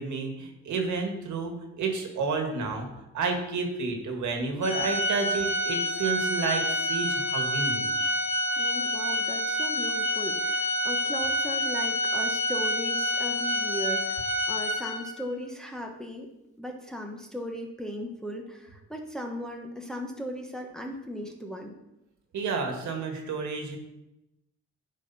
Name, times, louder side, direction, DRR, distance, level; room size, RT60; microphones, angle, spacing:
voice 1, 0.0-2.9 3.1-7.9 22.3-23.8, right 4 dB, 70° right, 3 dB, 1.8 m, -30 dB
Organ, 4.6-15.3, equal, 20° left, 1.8 m, -28 dB
voice 2, 8.6-16.3 16.6-21.8, equal, ahead, 1 dB, 1.2 m, -37 dB
9.7 x 4.9 x 4.2 m, 0.91 s
cardioid pair, 90°, 30 cm